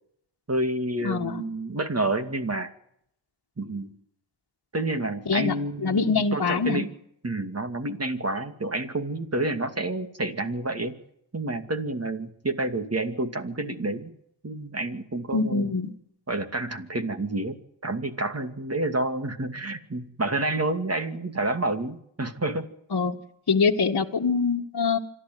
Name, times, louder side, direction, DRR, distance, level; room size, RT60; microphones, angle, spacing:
voice 1, 0.5-2.7 3.6-3.9 4.7-6.9 7.2-11.0 11.3-14.1 14.4-15.7 16.3-22.7, right 2 dB, 30° right, 8 dB, 2.5 m, -29 dB
voice 2, 1.0-1.4 5.2-5.5 5.8-6.9 15.3-15.9 22.9-23.2 23.5-25.0, left 4 dB, 50° left, 0 dB, 1.8 m, -24 dB
26.0 x 12.0 x 9.4 m, 0.74 s
cardioid pair, 50°, 46 cm